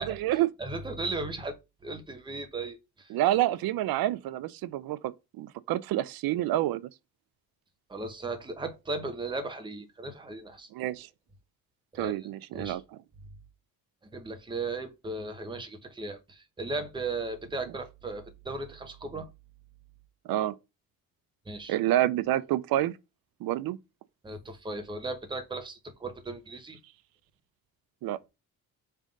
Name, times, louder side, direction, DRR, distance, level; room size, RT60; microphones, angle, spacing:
voice 1, 0.0-0.5 3.1-6.8 10.7-11.1 11.9-12.8 20.3-20.6 21.7-23.0 23.4-23.8 28.0-28.2, right 14 dB, 85° right, 0.5 m, -28 dB
voice 2, 0.6-3.1 7.9-10.7 12.0-12.8 14.1-19.3 21.5-21.7 24.2-26.8, right 3 dB, 15° right, 0.9 m, -36 dB
5.6 x 3.7 x 5.1 m
cardioid pair, 175°, 35 cm